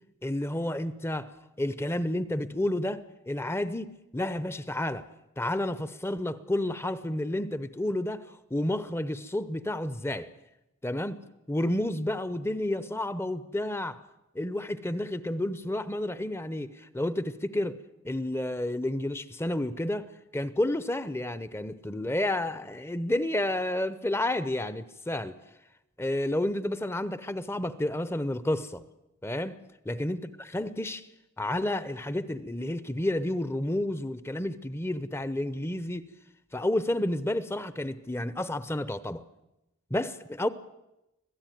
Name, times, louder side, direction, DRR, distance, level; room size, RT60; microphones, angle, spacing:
voice 1, 0.2-1.3 1.6-5.1 5.4-10.3 10.8-11.2 11.5-14.0 14.3-17.8 18.0-25.3 26.0-28.8 29.2-29.6 29.9-31.1 31.4-36.1 36.5-39.2 39.9-40.5, left 1 dB, 10° left, 0.7 m, -30 dB
25.5 x 16.5 x 9.3 m
head